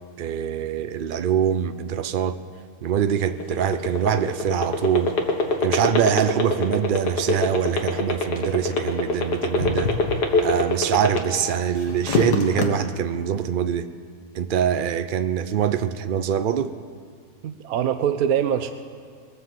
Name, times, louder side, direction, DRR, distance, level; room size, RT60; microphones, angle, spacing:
voice 1, 0.2-2.4 2.8-5.2 5.6-9.9 10.4-13.9 14.3-16.7, right 8 dB, 90° right, 11 dB, 0.4 m, -24 dB
sound 1, 3.3-11.5 11.9-12.6, left 4 dB, 90° left, 2.0 m, -22 dB
voice 2, 17.4-18.7, right 9 dB, 70° right, 9 dB, 1.1 m, -23 dB
22.5 x 7.7 x 7.5 m, 2.2 s
omnidirectional pair, 1.7 m